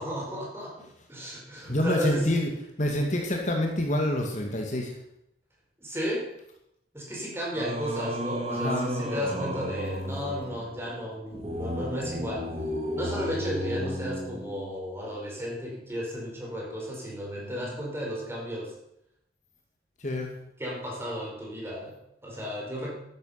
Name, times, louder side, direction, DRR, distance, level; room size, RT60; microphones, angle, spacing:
voice 1, 0.0-2.2 5.8-6.3 6.9-12.5 12.9-18.8 20.6-22.9, equal, 15° right, -3 dB, 4.9 m, -34 dB
voice 2, 1.7-2.5 2.8-5.0 8.5-9.0 17.4-17.7 20.0-20.3, left 1 dB, 45° left, 1 dB, 2.0 m, -27 dB
Singing, 7.5-14.9, equal, 35° right, 1.9 m, -33 dB
13.0 x 11.0 x 5.7 m, 0.79 s
head